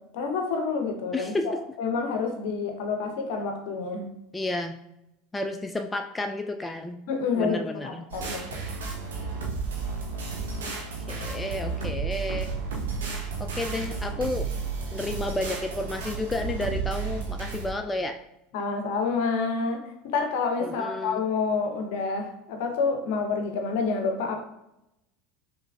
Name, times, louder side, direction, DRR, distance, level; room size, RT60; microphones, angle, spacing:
voice 1, 0.1-1.5 1.8-4.0 7.1-8.7 18.5-24.4, left 4 dB, 60° left, 4 dB, 0.7 m, -28 dB
voice 2, 1.1-1.5 4.3-4.8 5.3-7.0 7.4-8.1 10.8-12.5 13.4-14.5 14.9-18.1 20.6-21.2, left 2 dB, 15° left, 5 dB, 0.3 m, -31 dB
sound 1, 8.1-17.7, right 4 dB, 75° right, 0.8 m, -32 dB
5.4 x 3.1 x 2.3 m, 0.85 s
figure-of-eight pair, 80°, 0 cm